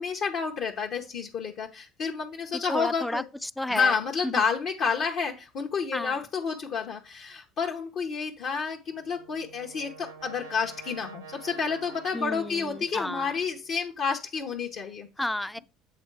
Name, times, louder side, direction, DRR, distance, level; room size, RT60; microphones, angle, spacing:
voice 1, 0.0-3.2 3.7-15.1, left 5 dB, 60° left, 0.8 m, -30 dB
voice 2, 2.5-4.0 4.2-4.4 5.9-6.2 12.1-13.4 15.2-15.6, left 1 dB, 5° left, 0.3 m, -32 dB
Brass instrument, 8.9-13.7, right 5 dB, 85° right, 0.8 m, -48 dB
7.8 x 3.7 x 4.6 m
hypercardioid pair, 65°, 0 cm